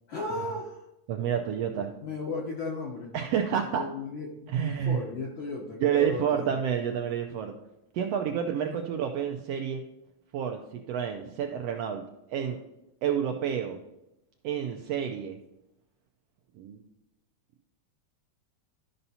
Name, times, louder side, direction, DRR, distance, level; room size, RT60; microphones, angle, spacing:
voice 1, 0.1-0.8 2.0-3.1 3.7-6.5 8.6-8.8, left 3 dB, 65° left, -2 dB, 1.2 m, -35 dB
voice 2, 1.1-1.9 3.1-3.9 4.5-5.0 5.8-7.5 7.9-9.8 10.3-12.0 12.3-12.6 13.0-13.8 14.4-15.4 16.6-16.8, right 8 dB, 85° right, 4 dB, 1.4 m, -29 dB
13.0 x 5.5 x 2.8 m, 0.87 s
omnidirectional pair, 3.4 m